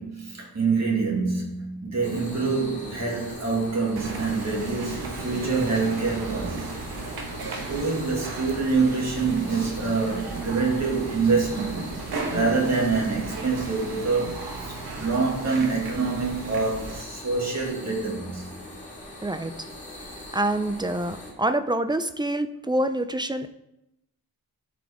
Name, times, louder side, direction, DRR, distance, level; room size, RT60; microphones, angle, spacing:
voice 1, 0.0-6.7 7.7-18.5, right 4 dB, 45° right, 2.1 m, -26 dB
sound 1, 2.0-21.3, left 1 dB, 20° left, 2.1 m, -42 dB
sound 2, 4.0-17.0, right 3 dB, 75° right, 1.1 m, -35 dB
voice 2, 19.2-19.5 20.3-23.5, right 1 dB, 15° right, 0.3 m, -26 dB
12.5 x 5.0 x 3.5 m
wide cardioid pair, 160°, 38 cm